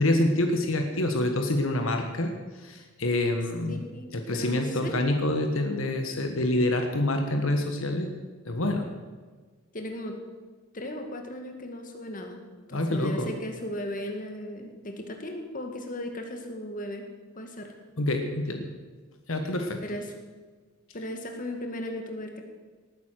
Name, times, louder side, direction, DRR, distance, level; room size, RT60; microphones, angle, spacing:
voice 1, 0.0-2.3 2.6-3.8 4.1-8.1 8.4-8.9 12.7-13.3 18.0-18.7 19.3-19.8, left 1 dB, 75° left, 5 dB, 1.5 m, -26 dB
voice 2, 3.7-5.0 9.7-10.2 10.7-12.4 12.7-17.0 17.4-17.7 19.8-20.1 20.9-22.4, left 1 dB, 40° left, 4 dB, 2.0 m, -36 dB
19.0 x 9.6 x 6.5 m, 1.4 s
head